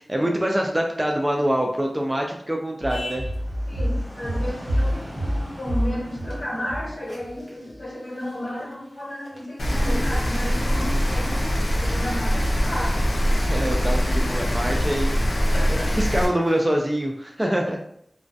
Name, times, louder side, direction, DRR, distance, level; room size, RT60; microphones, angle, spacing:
voice 1, 0.0-3.2 13.5-15.1 15.7-17.8, right 1 dB, 20° right, 1 dB, 0.3 m, -25 dB
sound 1, 2.8-7.8 8.2-8.7 9.0-9.4 9.9-10.0 10.3-10.4 11.6-12.1 12.8-12.9 13.1-13.3 14.3-14.4 14.6-14.7 15.0-15.2 16.1-16.2 16.5-16.8, equal, 40° right, 0.8 m, -28 dB
voice 2, 3.7-13.7 14.3-14.4 15.4-15.9 17.4-17.6, equal, 55° left, -5 dB, 1.1 m, -33 dB
Rain, 9.6-16.3, equal, 75° left, 0.5 m, -23 dB
2.2 x 2.1 x 2.6 m, 0.71 s
wide cardioid pair, 75°, 0 cm